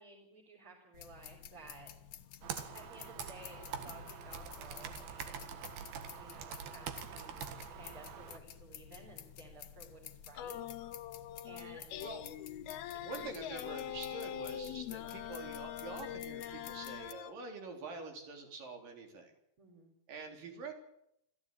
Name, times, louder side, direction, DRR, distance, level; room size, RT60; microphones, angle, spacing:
voice 1, 0.0-1.9 2.7-5.6 6.0-10.6 11.4-12.1 13.1-13.3 19.6-19.9, right 3 dB, 35° right, -2 dB, 4.7 m, -55 dB
sound 1, 0.9-17.1, left 10 dB, 65° left, 2.3 m, -52 dB
Computer keyboard, 2.4-8.4, right 8 dB, 80° right, 3.5 m, -45 dB
sound 2, 10.4-17.3, left 10 dB, 85° left, 3.0 m, -43 dB
voice 2, 13.0-19.3 20.1-20.7, right 3 dB, 65° right, 3 dB, 5.3 m, -46 dB
26.5 x 15.0 x 8.8 m, 0.78 s
omnidirectional pair, 4.3 m